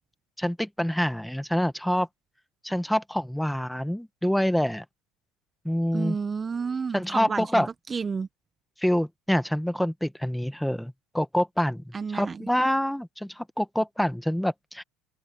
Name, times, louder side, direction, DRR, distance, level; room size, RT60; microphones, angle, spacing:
voice 1, 0.4-2.1 2.6-4.8 5.6-6.2 6.9-7.7 8.8-14.8, equal, ahead, 1.6 m, -26 dB
voice 2, 5.9-8.3 11.9-12.5, right 5 dB, 25° right, 1.3 m, -31 dB
open air
hypercardioid pair, 80°, 0 cm